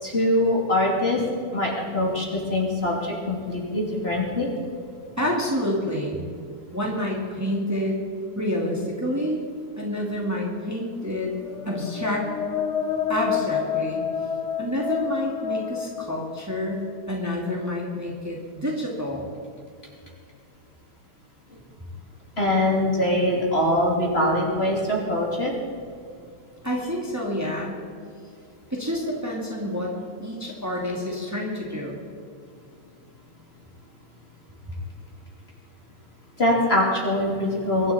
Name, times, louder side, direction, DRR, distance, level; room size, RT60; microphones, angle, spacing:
voice 1, 0.0-1.2 1.5-4.5 21.5-21.6 22.4-25.5 36.4-37.9, left 1 dB, 35° left, -2 dB, 3.0 m, -23 dB
voice 2, 5.2-6.2 6.7-8.0 8.3-9.4 9.8-11.3 11.7-12.3 13.1-14.0 14.6-19.3 26.6-27.8 28.7-29.9 30.2-32.0, equal, 10° right, -2 dB, 2.4 m, -28 dB
sound 1, 11.3-17.1, left 8 dB, 55° left, 1.0 m, -29 dB
23.5 x 11.5 x 4.3 m, 2.3 s
omnidirectional pair, 1.9 m